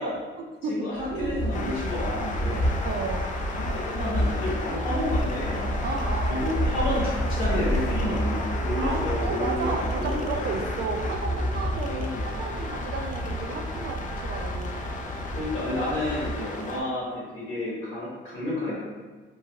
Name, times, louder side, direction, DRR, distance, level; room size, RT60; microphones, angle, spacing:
voice 1, 0.0-1.4 2.8-3.3 5.8-6.6 8.8-14.9, right 4 dB, 55° right, 3 dB, 0.4 m, -33 dB
voice 2, 0.7-2.7 3.7-5.8 6.3-10.3 11.8-12.2 15.3-18.7, left 1 dB, 90° left, -7 dB, 1.4 m, -30 dB
sound 1, 1.0-16.7, equal, 15° left, 1.0 m, -30 dB
sound 2, 1.5-16.8, left 2 dB, 40° left, 0.4 m, -36 dB
3.0 x 2.5 x 2.8 m, 1.3 s
cardioid pair, 90°, 20 cm